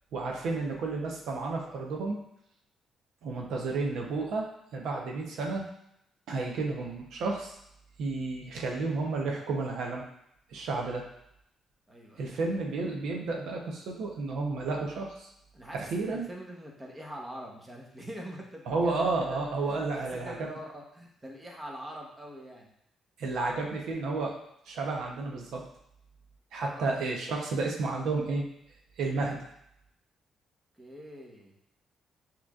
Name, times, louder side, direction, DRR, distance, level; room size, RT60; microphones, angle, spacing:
voice 1, 0.1-2.2 3.2-5.7 6.3-7.6 8.0-10.0 10.5-11.1 12.2-15.3 15.7-16.3 18.7-20.5 23.2-24.4 24.7-25.6 26.5-28.4 29.0-29.4, right 3 dB, 80° right, 0 dB, 0.8 m, -31 dB
voice 2, 11.9-12.4 15.5-22.7 26.7-27.0 30.8-31.5, equal, 20° right, -1 dB, 1.0 m, -44 dB
6.1 x 3.0 x 2.4 m, 0.78 s
cardioid pair, 90°, 0 cm